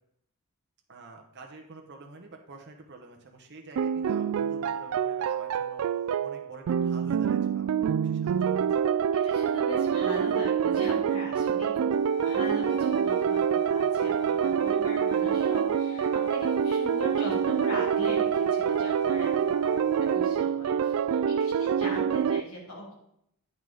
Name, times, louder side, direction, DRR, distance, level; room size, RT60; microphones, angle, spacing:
voice 1, 0.9-5.8 6.2-8.7 21.6-21.7, right 3 dB, 50° right, 2 dB, 0.9 m, -48 dB
sound 1, 3.8-22.4, right 7 dB, 70° right, 0.3 m, -26 dB
voice 2, 9.1-11.9 12.2-22.9, equal, 75° left, -2 dB, 2.6 m, -40 dB
sound 2, 11.9-20.2, equal, 55° left, 0.5 m, -42 dB
9.3 x 5.6 x 3.8 m, 0.74 s
head